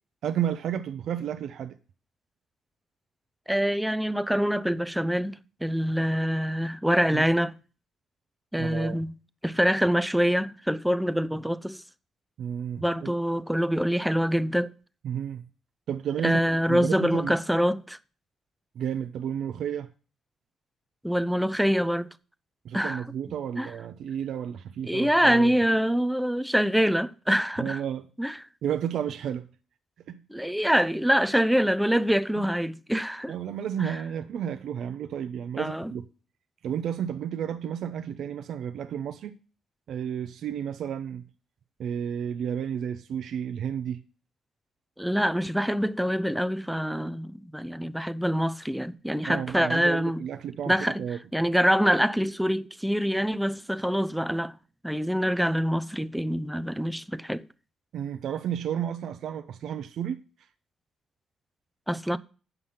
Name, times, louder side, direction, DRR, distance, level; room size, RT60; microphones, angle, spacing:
voice 1, 0.2-1.8 7.1-7.3 8.6-9.0 12.4-13.1 15.0-15.4 15.9-16.4 16.7-17.4 18.7-19.9 22.6-25.6 27.6-28.0 28.6-29.5 30.1-30.2 32.4-32.5 33.3-36.0 36.6-39.3 39.9-41.2 41.8-44.0 49.3-51.2 57.9-60.2, right 9 dB, 70° right, 0.6 m, -32 dB
voice 2, 3.5-7.5 8.5-9.1 9.4-11.8 12.8-14.7 16.2-18.0 21.0-22.1 22.7-23.0 23.6-23.7 24.9-27.8 28.2-28.3 30.3-33.3 35.6-35.9 45.0-50.2 50.7-51.0 51.3-54.5 54.8-57.5 61.9-62.2, equal, ahead, 0.5 m, -25 dB
8.0 x 5.7 x 7.0 m
cardioid pair, 90°, 0 cm